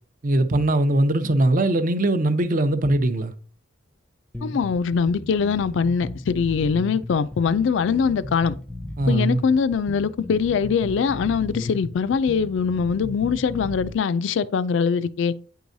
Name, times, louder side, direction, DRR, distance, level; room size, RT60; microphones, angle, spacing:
voice 1, 0.2-3.3 9.0-9.4, right 1 dB, 45° right, 0.6 m, -21 dB
sound 1, 4.3-13.9, left 1 dB, 5° left, 0.6 m, -36 dB
voice 2, 4.4-8.6 9.1-15.3, left 6 dB, 65° left, 0.3 m, -22 dB
9.1 x 4.7 x 2.7 m
head